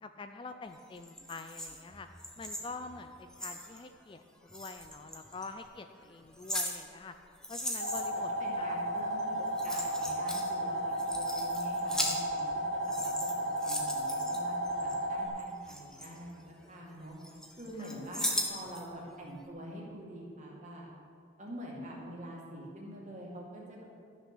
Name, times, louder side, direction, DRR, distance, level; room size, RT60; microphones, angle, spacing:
voice 1, 0.0-2.1 2.4-7.1 7.5-8.3 8.6-8.8 10.7-11.2 17.8-18.0, left 3 dB, 25° left, 8 dB, 0.3 m, -46 dB
sound 1, 1.0-3.8 4.5-5.5 6.1-8.3 9.2-9.3 9.5-10.5 10.8-12.6 12.8-14.9 15.4-16.8 17.2-18.8 19.2-19.3, left 1 dB, 5° left, 0.9 m, -38 dB
sound 2, 7.8-15.3, equal, 85° right, 2.1 m, -33 dB
voice 2, 8.4-16.4 16.7-17.2 17.6-20.9 21.4-23.8, equal, 35° right, -3 dB, 2.2 m, -45 dB
12.5 x 6.4 x 6.1 m, 2.3 s
head